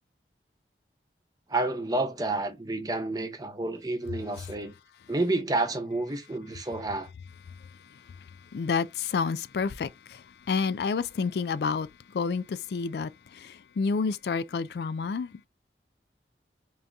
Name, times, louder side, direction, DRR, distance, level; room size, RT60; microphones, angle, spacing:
voice 1, 1.5-4.7 5.1-7.1, right 2 dB, 20° right, 0.7 m, -29 dB
voice 2, 7.5-15.5, left 5 dB, 70° left, 0.3 m, -30 dB
3.7 x 2.7 x 3.4 m
head